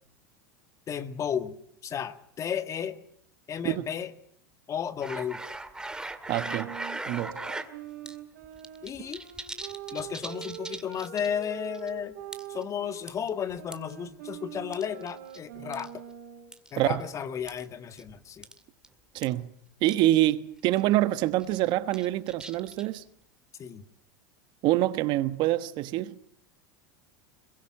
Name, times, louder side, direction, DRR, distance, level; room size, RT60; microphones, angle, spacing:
voice 1, 0.9-1.6 1.8-3.0 3.5-4.1 4.7-5.4 8.8-9.2 9.9-12.2 12.5-15.9 16.7-18.5 23.6-23.8, left 8 dB, 35° left, 1.8 m, -33 dB
sound 1, 5.0-7.7 8.1-8.2 8.4-11.4 11.7-11.9 12.3-12.6 13.1-13.9 14.7-15.4 15.7-15.9 16.5-16.7 17.5-17.6 18.0-18.1 18.4-18.6 18.8-18.9 19.2-19.3 19.9-20.0 20.2-20.3 20.7-20.9 21.4-23.0, right 2 dB, 10° right, 2.0 m, -39 dB
voice 2, 6.3-6.7 7.1-7.4 16.8-17.0 19.1-19.5 19.8-23.0 24.6-26.2, right 15 dB, 50° right, 1.2 m, -26 dB
sound 2, 6.4-13.1 13.6-16.5, right 10 dB, 70° right, 2.9 m, -44 dB
22.0 x 21.5 x 7.5 m
hypercardioid pair, 100°, 10 cm